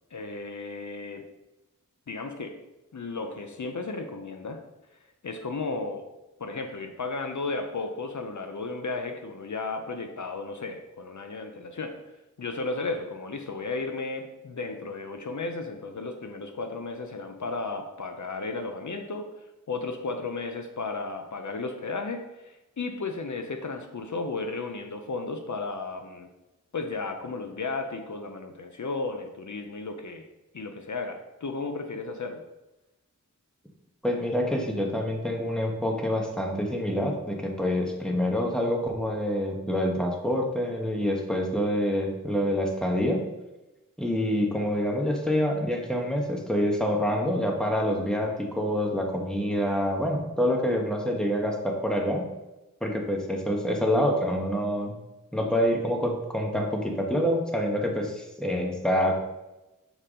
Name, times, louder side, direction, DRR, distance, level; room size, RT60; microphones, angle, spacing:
voice 1, 0.1-1.2 2.1-2.6 2.9-4.6 4.9-5.0 5.2-6.0 6.4-12.0 12.4-26.3 26.7-30.2 30.5-32.4, left 3 dB, 65° left, 5 dB, 0.6 m, -34 dB
voice 2, 34.0-43.2 44.0-52.3 52.8-54.9 55.3-59.2, equal, ahead, 0 dB, 1.2 m, -26 dB
6.8 x 4.5 x 3.7 m, 1.0 s
wide cardioid pair, 50°, 32 cm